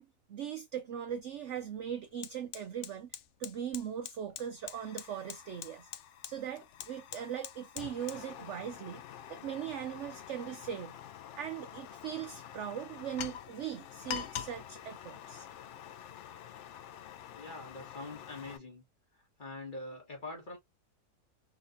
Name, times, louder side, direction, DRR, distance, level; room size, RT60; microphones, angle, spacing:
voice 1, 0.0-5.9 6.3-9.0 9.3-11.0 11.3-15.5, right 9 dB, 70° right, 0.7 m, -40 dB
Fire, 1.1-1.2 1.6-18.6, left 10 dB, 70° left, 0.7 m, -46 dB
voice 2, 17.3-18.8 19.4-20.6, left 2 dB, 30° left, 1.6 m, -44 dB
3.8 x 3.3 x 2.6 m
omnidirectional pair, 1.7 m